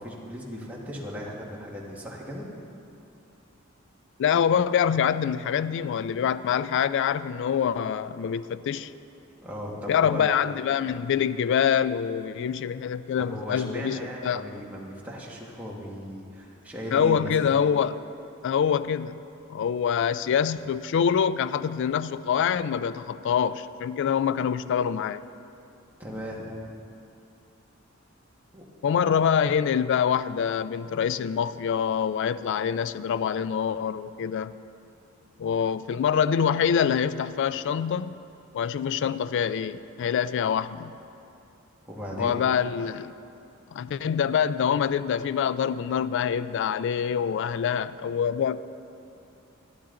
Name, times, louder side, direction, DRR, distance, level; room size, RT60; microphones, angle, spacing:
voice 1, 0.0-2.5 9.4-10.3 13.2-17.3 26.0-26.5 28.5-28.6 41.8-42.5, equal, 5° right, -4 dB, 1.5 m, -37 dB
voice 2, 4.2-8.9 9.9-14.4 16.9-18.0 18.4-19.2 19.5-25.2 28.8-34.5 35.4-38.1 38.5-41.0 42.2-43.1 43.7-48.7, left 7 dB, 60° left, 16 dB, 0.3 m, -25 dB
12.0 x 11.5 x 3.8 m, 2.7 s
head